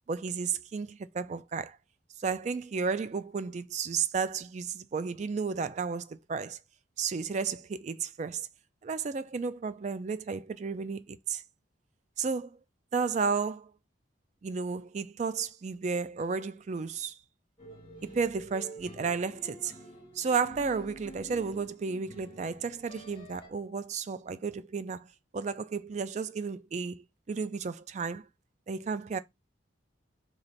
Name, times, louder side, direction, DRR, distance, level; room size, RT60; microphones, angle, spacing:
voice 1, 0.1-1.8 2.2-6.6 7.0-8.5 8.8-11.4 12.2-12.6 12.9-13.7 14.4-17.2 18.1-19.7 20.2-28.3 28.7-29.2, right 5 dB, 35° right, 0.3 m, -33 dB
sound 1, 17.6-23.5, right 1 dB, 30° left, 1.3 m, -49 dB
3.1 x 2.5 x 4.0 m
head